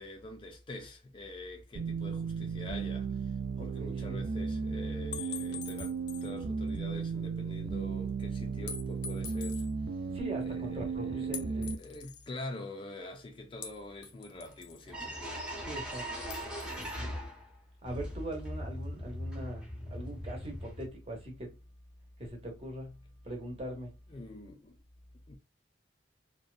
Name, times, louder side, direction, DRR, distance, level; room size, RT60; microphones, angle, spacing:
voice 1, 0.0-5.9 6.2-9.6 10.4-15.2 24.1-24.8 25.3-25.4, left 2 dB, 30° left, 0.4 m, -45 dB
sound 1, 1.7-11.7, right 5 dB, 65° right, 0.3 m, -35 dB
voice 2, 3.6-4.2 10.1-11.7 15.6-16.1 16.8-17.1 17.8-21.6 22.2-23.9, right 1 dB, 35° right, 0.9 m, -41 dB
sound 2, 5.1-6.4 6.7-6.8 8.7-9.7 11.3-12.3 13.6-14.9 16.3-17.0, left 8 dB, 90° left, 0.5 m, -44 dB
sound 3, 14.5-14.6 14.9-17.5 17.9-20.9, equal, 5° right, 0.7 m, -40 dB
2.6 x 2.2 x 2.3 m
head